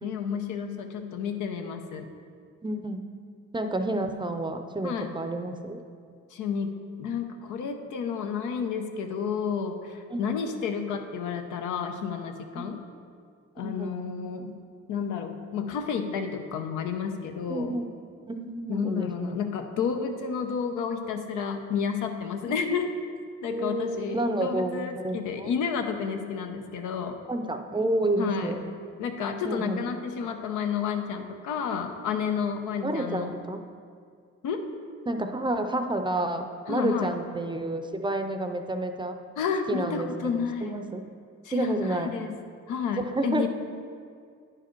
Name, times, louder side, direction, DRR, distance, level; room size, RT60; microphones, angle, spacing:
voice 1, 0.0-2.1 4.8-5.1 6.3-6.7 7.0-12.8 13.6-14.6 14.9-17.7 18.7-22.9 23.4-27.2 28.2-28.5 29.0-33.3 34.4-34.7 36.7-37.1 39.4-40.8 41.4-42.3 42.7-43.5, left 6 dB, 90° left, 5 dB, 0.7 m, -31 dB
voice 2, 2.6-3.0 3.5-5.8 10.1-10.2 12.6-12.7 13.6-13.9 17.5-17.9 18.3-19.4 22.5-22.6 23.5-25.5 27.3-28.6 29.4-29.8 32.8-33.6 35.1-39.2 39.7-41.0 41.5-42.1 43.0-43.5, right 1 dB, 15° right, 7 dB, 0.5 m, -30 dB
9.8 x 4.9 x 4.5 m, 2.2 s
cardioid pair, 90°, 30 cm